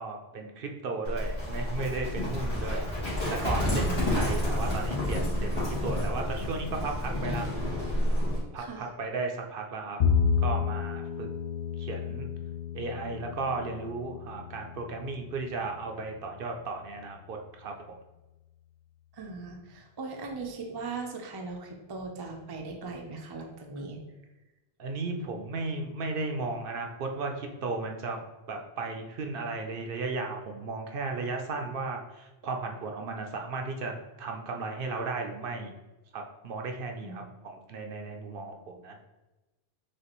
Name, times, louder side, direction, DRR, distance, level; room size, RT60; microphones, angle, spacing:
voice 1, 0.0-2.8 3.3-7.5 8.5-10.0 10.4-11.3 11.8-12.3 12.7-17.7 24.8-28.2 28.5-35.7 36.1-39.0, right 3 dB, 65° right, 3 dB, 0.7 m, -35 dB
Livestock farm animals working animals, 1.0-8.4, left 1 dB, 80° left, 1.6 m, -29 dB
voice 2, 3.7-4.2 8.6-8.9 19.1-24.0 25.2-25.4 37.0-37.2, right 3 dB, 35° right, 2 dB, 0.4 m, -39 dB
Bowed string instrument, 10.0-16.3, left 6 dB, 60° left, 0.6 m, -31 dB
6.2 x 2.4 x 3.0 m, 1.1 s
omnidirectional pair, 1.1 m